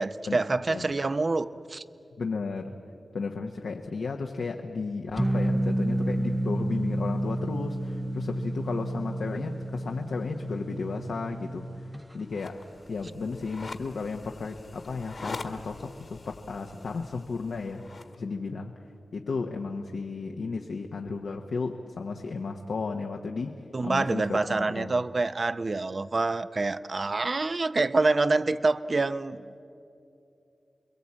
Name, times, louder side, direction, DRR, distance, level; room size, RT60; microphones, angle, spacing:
voice 1, 0.0-1.8 23.7-29.6, right 3 dB, 50° right, 13 dB, 0.8 m, -26 dB
voice 2, 2.2-2.7 3.1-11.7 12.1-12.6 12.9-17.8 18.1-18.7 19.1-25.0, left 4 dB, 85° left, 2 dB, 1.1 m, -34 dB
sound 1, 5.2-12.0, right 1 dB, 15° right, 0.7 m, -30 dB
sound 2, 12.3-18.1, left 3 dB, 65° left, 1.7 m, -44 dB
28.0 x 22.0 x 8.6 m, 2.7 s
cardioid pair, 45°, 0 cm